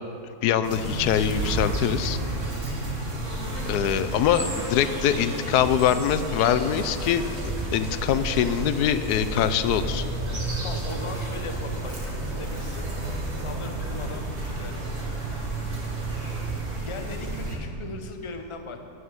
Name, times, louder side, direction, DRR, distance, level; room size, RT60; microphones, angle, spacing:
voice 1, 0.4-2.2 3.7-7.3 7.7-10.0, left 9 dB, 90° left, 12 dB, 1.2 m, -23 dB
sound 1, 0.6-17.6, right 2 dB, 45° right, 2.1 m, -31 dB
voice 2, 4.4-4.8 10.6-12.9 13.3-15.4 16.1-16.3 16.8-18.8, left 3 dB, 25° left, 5 dB, 0.8 m, -39 dB
11.5 x 6.5 x 9.4 m, 2.7 s
omnidirectional pair, 1.6 m